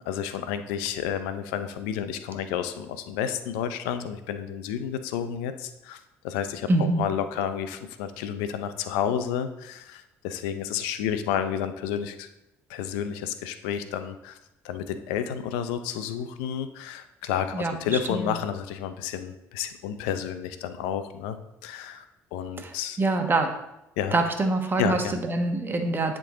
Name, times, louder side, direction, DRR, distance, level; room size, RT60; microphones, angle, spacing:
voice 1, 0.1-12.3 12.7-14.4 14.6-21.4 21.6-22.0 22.3-23.0 24.0-24.2 24.8-25.2, left 9 dB, 85° left, 10 dB, 0.6 m, -31 dB
voice 2, 6.7-7.0 17.5-18.4 22.6-23.5 24.1-26.2, right 2 dB, 30° right, 4 dB, 1.3 m, -25 dB
10.0 x 3.8 x 3.8 m, 0.87 s
hypercardioid pair, 65°, 7 cm